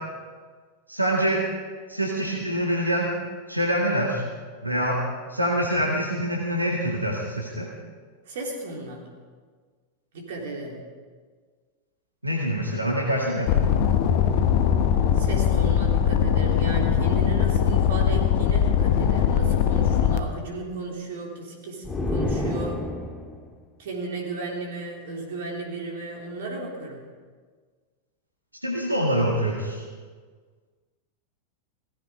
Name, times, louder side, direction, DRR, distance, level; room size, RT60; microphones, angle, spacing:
voice 1, 0.9-1.4 1.9-3.1 3.5-4.2 4.6-5.0 5.3-7.7 12.2-13.5 28.6-29.8, equal, 85° right, -2 dB, 2.0 m, -25 dB
voice 2, 8.3-9.0 10.1-10.8 15.1-22.8 23.8-27.1, right 2 dB, 55° right, 0 dB, 3.6 m, -34 dB
sound 1, 13.5-20.2, left 8 dB, 45° left, 1.1 m, -21 dB
sound 2, 21.8-23.5, left 2 dB, 15° left, 2.0 m, -28 dB
17.5 x 15.0 x 5.1 m, 1.5 s
figure-of-eight pair, 90°, 0 cm